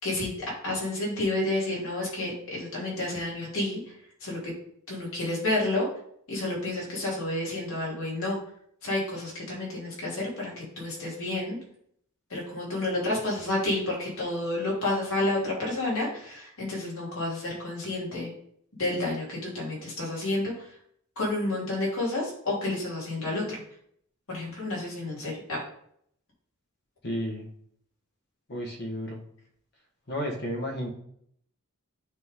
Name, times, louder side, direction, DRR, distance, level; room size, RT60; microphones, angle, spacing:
voice 1, 0.0-3.9 4.2-4.4 4.9-5.9 6.3-8.4 8.8-11.6 12.3-18.3 18.8-20.7 21.2-23.6 24.3-25.6, left 2 dB, 65° left, -4 dB, 3.1 m, -30 dB
voice 2, 27.0-27.5 28.5-29.2 30.1-30.9, equal, 50° left, 1 dB, 1.6 m, -32 dB
9.1 x 3.8 x 3.8 m, 0.67 s
head